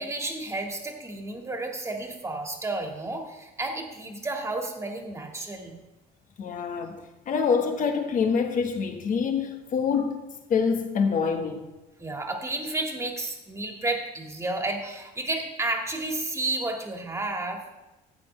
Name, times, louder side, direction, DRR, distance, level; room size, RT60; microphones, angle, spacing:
voice 1, 0.0-5.8 12.0-17.6, right 2 dB, 15° right, 2 dB, 1.9 m, -31 dB
voice 2, 6.4-11.7, left 6 dB, 50° left, 5 dB, 1.4 m, -26 dB
14.0 x 9.0 x 3.3 m, 1.0 s
cardioid pair, 110°, 17 cm